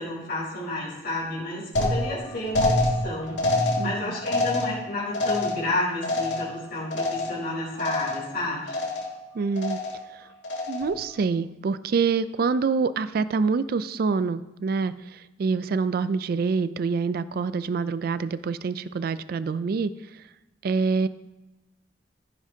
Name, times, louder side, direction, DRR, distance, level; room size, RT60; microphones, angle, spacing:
voice 1, 0.0-8.7, left 2 dB, 60° left, -8 dB, 4.1 m, -31 dB
sound 1, 1.8-7.5 7.8-8.4 8.7-9.2 9.6-10.1 10.4-11.0, left 2 dB, 80° left, 2.2 m, -27 dB
voice 2, 3.8-4.2 9.3-9.8 10.1-10.3 10.7-20.3 20.6-21.1, right 5 dB, 55° right, 15 dB, 0.3 m, -26 dB
15.0 x 8.4 x 2.8 m, 1.1 s
head